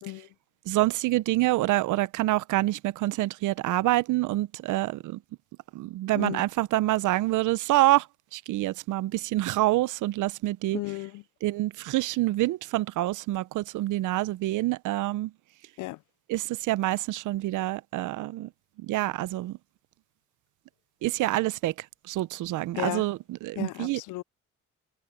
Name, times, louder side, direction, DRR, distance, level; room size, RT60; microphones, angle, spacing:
voice 1, 0.7-5.2 5.7-8.1 8.3-10.8 11.4-15.3 16.3-18.5 18.8-19.6 21.0-21.7 22.1-24.0, right 17 dB, 80° right, 0.6 m, -26 dB
voice 2, 10.7-11.2 15.8-16.0 22.7-23.1 23.6-24.2, left 20 dB, 85° left, 0.4 m, -34 dB
cardioid pair, 90°, 30 cm